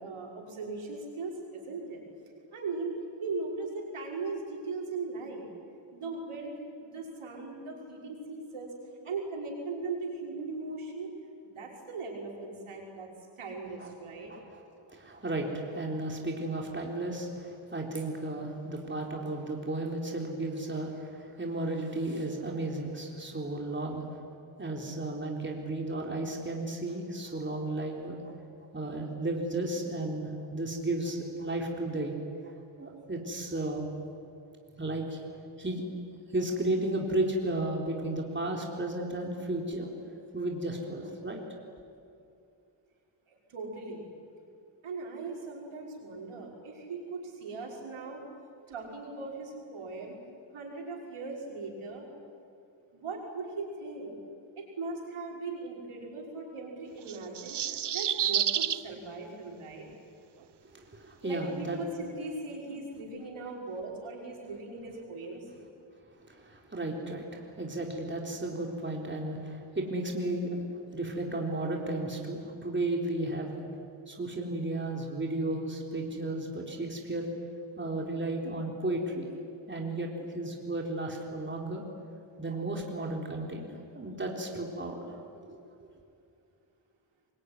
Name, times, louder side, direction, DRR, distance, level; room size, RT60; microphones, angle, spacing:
voice 1, 0.0-2.0 2.5-5.5 5.9-8.7 9.0-11.1 11.4-13.1 13.4-14.3 43.3-44.1 44.8-48.2 48.7-50.2 50.5-52.1 52.9-54.1 54.6-59.9 61.2-65.5, right 3 dB, 80° right, -1 dB, 6.0 m, -39 dB
voice 2, 14.3-14.6 14.9-24.2 24.6-28.4 28.7-32.2 32.4-32.5 32.8-33.9 34.8-35.2 35.6-35.9 36.3-39.9 40.3-41.4 60.6-61.8 66.2-70.6 70.9-73.6 74.1-77.3 77.8-79.3 79.7-81.8 82.4-85.2 85.5-85.6, right 2 dB, 20° right, 0 dB, 3.9 m, -34 dB
sound 1, 57.1-58.8, right 9 dB, 55° right, 0.9 m, -29 dB
24.5 x 23.0 x 9.9 m, 2.5 s
cardioid pair, 90°, 49 cm